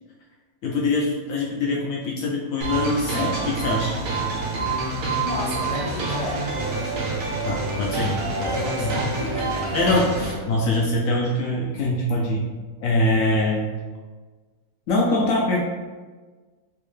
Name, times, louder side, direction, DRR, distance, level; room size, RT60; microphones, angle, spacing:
voice 1, 0.6-4.0 7.4-8.5 8.9-9.0 9.7-12.5 12.8-13.6 14.9-15.6, left 2 dB, 75° left, -2 dB, 0.7 m, -23 dB
sound 1, 2.6-10.4, right 3 dB, 80° right, 1.4 m, -27 dB
voice 2, 5.2-7.0 8.4-9.8, left 1 dB, 35° left, -8 dB, 0.7 m, -32 dB
4.5 x 2.1 x 3.2 m, 1.4 s
omnidirectional pair, 1.9 m